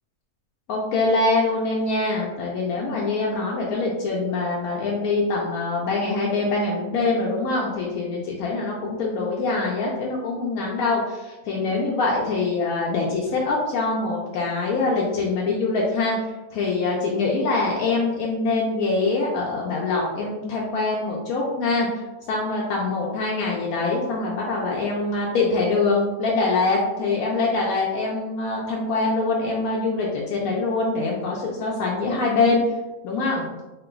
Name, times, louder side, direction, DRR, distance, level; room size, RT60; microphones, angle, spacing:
voice 1, 0.7-21.9 22.3-32.6 33.0-33.4, left 3 dB, 90° left, -3 dB, 1.1 m, -24 dB
3.7 x 2.2 x 3.8 m, 1.1 s
omnidirectional pair, 1.5 m